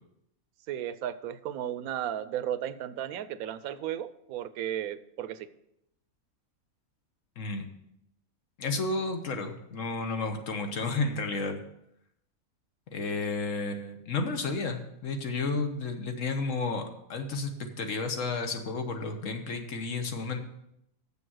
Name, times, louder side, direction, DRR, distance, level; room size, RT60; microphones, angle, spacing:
voice 1, 0.7-5.5, right 10 dB, 85° right, 15 dB, 1.0 m, -34 dB
voice 2, 7.4-7.7 8.6-11.6 12.9-16.8 17.1-20.4, left 3 dB, 65° left, 5 dB, 1.4 m, -32 dB
7.1 x 7.0 x 6.2 m, 0.79 s
omnidirectional pair, 1.4 m